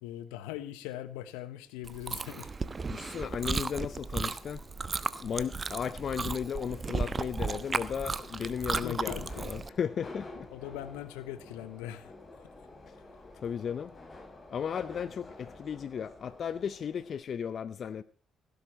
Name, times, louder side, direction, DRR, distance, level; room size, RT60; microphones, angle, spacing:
voice 1, 0.0-2.5 8.6-9.4 10.5-12.1, left 12 dB, 85° left, 1.1 m, -41 dB
Chewing mastication, 1.8-9.7, right 4 dB, 35° right, 1.0 m, -35 dB
voice 2, 2.9-4.6 5.2-10.5 12.9-13.0 13.3-14.0 14.5-18.0, left 7 dB, 55° left, 0.6 m, -35 dB
Subway metro underground, 2.9-17.2, left 2 dB, 35° left, 6.2 m, -51 dB
16.5 x 10.5 x 4.3 m
hypercardioid pair, 50°, 0 cm